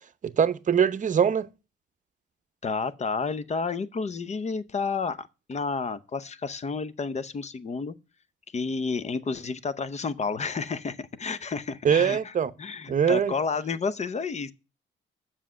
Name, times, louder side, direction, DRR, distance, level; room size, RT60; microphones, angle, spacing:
voice 1, 0.2-1.5 11.8-12.5 12.9-13.3, right 7 dB, 40° right, 0.7 m, -22 dB
voice 2, 2.6-8.0 8.5-14.5, left 4 dB, 35° left, 0.7 m, -31 dB
7.4 x 5.7 x 6.2 m
cardioid pair, 90°, 20 cm